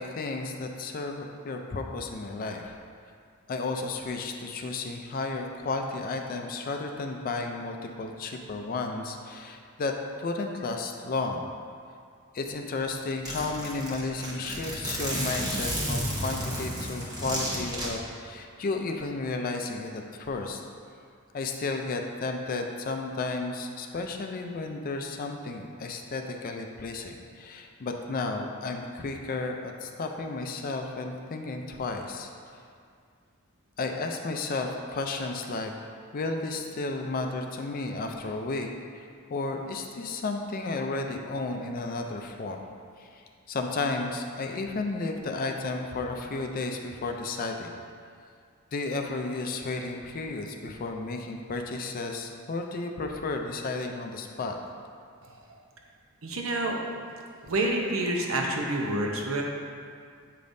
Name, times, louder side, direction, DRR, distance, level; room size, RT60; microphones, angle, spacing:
voice 1, 0.0-2.8 3.5-11.5 12.3-20.6 21.3-32.3 33.8-35.7 36.1-42.6 43.0-43.2 43.5-47.7 48.7-54.6, left 3 dB, 45° left, 3 dB, 0.4 m, -33 dB
Zipper (clothing), 12.5-12.6 12.8-12.9 13.3-17.9, equal, 20° right, 0.9 m, -32 dB
voice 2, 56.2-56.8 57.4-59.4, right 1 dB, 70° right, 1 dB, 0.7 m, -28 dB
7.5 x 5.1 x 2.6 m, 2.2 s
head